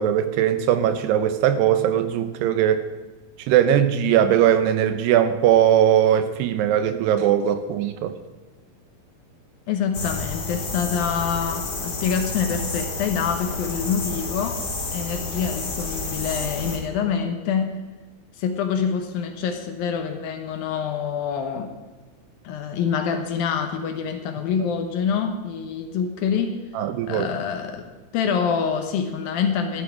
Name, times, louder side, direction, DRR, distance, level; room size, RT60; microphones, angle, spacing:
voice 1, 0.0-2.8 3.5-8.1 26.7-27.3, right 10 dB, 85° right, 9 dB, 3.0 m, -20 dB
voice 2, 9.7-14.6 14.9-17.8 18.4-21.7 22.4-26.6 27.1-27.8 28.1-29.8, left 7 dB, 70° left, 6 dB, 2.7 m, -26 dB
sound 1, 9.9-16.8, left 3 dB, 35° left, 1.7 m, -30 dB
15.5 x 11.5 x 5.0 m, 1.2 s
omnidirectional pair, 4.7 m